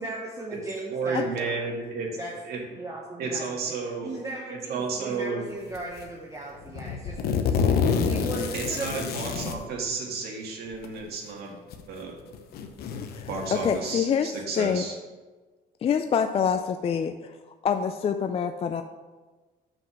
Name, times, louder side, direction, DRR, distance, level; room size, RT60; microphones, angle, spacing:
voice 1, 0.0-1.7 2.2-2.3 2.7-3.8 4.0-7.5 8.0-9.0, right 2 dB, 20° right, -2 dB, 1.0 m, -37 dB
voice 2, 0.9-2.1 2.4-2.6 3.2-4.1 4.5-5.5 8.5-11.6 11.9-12.2 13.3-14.9, right 4 dB, 70° right, -1 dB, 1.9 m, -32 dB
sound 1, 5.7-6.1 6.7-9.6 10.7-10.9 11.7-11.8 12.3-13.8, left 6 dB, 65° left, 0.8 m, -27 dB
voice 3, 13.0-13.3 13.6-14.8 15.8-17.4 17.6-18.8, left 7 dB, 35° left, 8 dB, 0.4 m, -26 dB
6.0 x 5.3 x 5.9 m, 1.3 s
cardioid pair, 110°, 17 cm